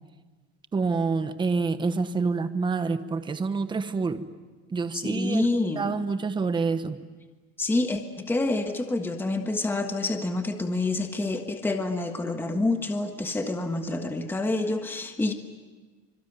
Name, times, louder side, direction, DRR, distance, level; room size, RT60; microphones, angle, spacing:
voice 1, 0.7-4.2 4.7-5.4 5.8-7.0, right 4 dB, 15° right, 10 dB, 1.1 m, -27 dB
voice 2, 4.9-5.9 7.6-15.3, left 2 dB, 5° left, 5 dB, 1.4 m, -27 dB
26.0 x 24.5 x 9.4 m, 1.3 s
cardioid pair, 150°, 32 cm